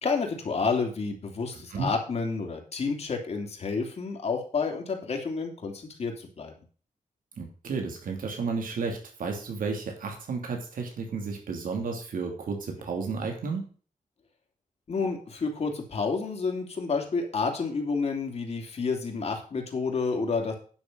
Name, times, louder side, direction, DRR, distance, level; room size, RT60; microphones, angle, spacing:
voice 1, 0.0-6.5 14.9-20.5, left 4 dB, 50° left, 3 dB, 2.7 m, -30 dB
voice 2, 7.4-13.7, right 4 dB, 90° right, 2 dB, 2.8 m, -32 dB
10.5 x 6.3 x 5.5 m, 0.40 s
wide cardioid pair, 160°, 14 cm